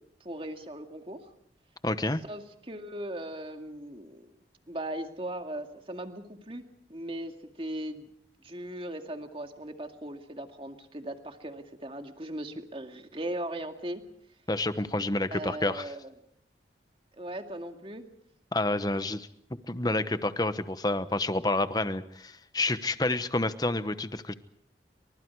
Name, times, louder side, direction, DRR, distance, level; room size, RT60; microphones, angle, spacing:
voice 1, 0.2-1.2 2.3-4.4 4.7-8.1 8.4-14.0 15.3-16.1 17.2-18.1, right 1 dB, 30° right, 5 dB, 2.2 m, -38 dB
voice 2, 1.8-2.2 14.5-15.9 18.5-19.3 19.7-24.3, left 2 dB, 20° left, 12 dB, 1.1 m, -29 dB
30.0 x 25.0 x 4.8 m, 0.69 s
head